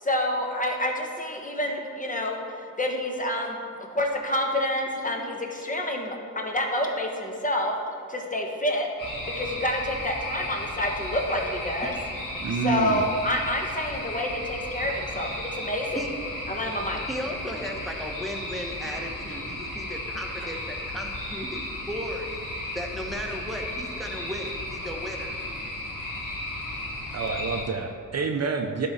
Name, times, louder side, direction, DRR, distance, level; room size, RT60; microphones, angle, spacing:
voice 1, 0.0-7.7 8.1-8.9 9.3-11.9 12.6-16.0 16.5-17.0, left 1 dB, 20° left, 1 dB, 1.1 m, -28 dB
sound 1, 9.0-27.6, left 1 dB, 60° left, 1.9 m, -34 dB
voice 2, 12.4-13.0 27.1-28.9, right 5 dB, 45° right, 5 dB, 0.6 m, -28 dB
voice 3, 17.1-22.3 22.7-25.4, equal, ahead, 1 dB, 1.1 m, -35 dB
11.0 x 3.8 x 4.2 m, 2.3 s
cardioid pair, 55°, 35 cm